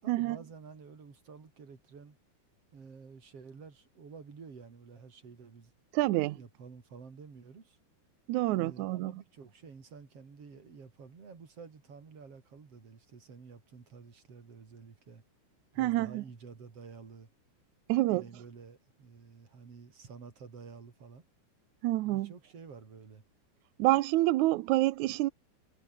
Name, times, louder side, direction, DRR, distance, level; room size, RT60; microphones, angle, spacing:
voice 1, 0.0-2.2 2.7-5.7 6.3-7.8 8.5-15.2 15.7-17.3 17.9-21.2 22.0-23.2, right 5 dB, 40° right, 4.5 m, -50 dB
voice 2, 5.9-6.4 8.3-9.1 15.8-16.2 17.9-18.2 21.8-22.3 23.8-25.3, right 17 dB, 85° right, 1.7 m, -27 dB
omnidirectional pair, 4.2 m